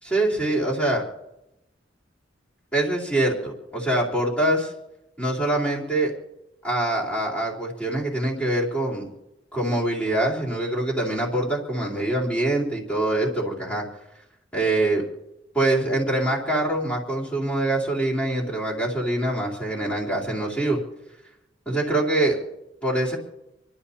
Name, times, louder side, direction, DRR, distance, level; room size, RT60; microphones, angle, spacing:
voice 1, 0.0-1.0 2.7-4.7 5.2-6.1 6.6-9.1 9.5-13.8 14.5-15.0 15.5-20.8 21.7-22.4 22.8-23.2, right 1 dB, 5° left, -5 dB, 3.5 m, -24 dB
28.0 x 12.0 x 2.9 m, 0.91 s
head